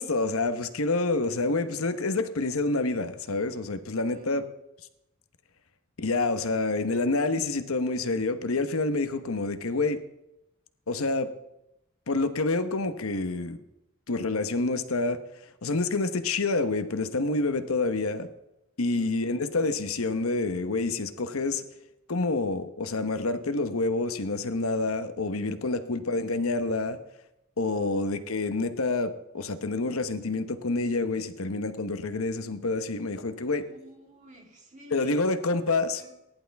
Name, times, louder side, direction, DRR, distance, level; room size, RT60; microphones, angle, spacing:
voice 1, 0.0-4.4 6.0-10.0 10.9-11.3 12.1-13.6 14.1-15.2 15.6-18.3 18.8-21.6 22.1-27.0 27.6-33.6 34.9-36.0, left 3 dB, 85° left, 10 dB, 1.1 m, -28 dB
voice 2, 4.1-4.5 18.9-19.2 25.7-26.3 27.7-28.1 33.7-35.4 36.0-36.1, right 1 dB, 35° right, 0 dB, 3.3 m, -51 dB
18.5 x 11.0 x 3.5 m, 0.87 s
head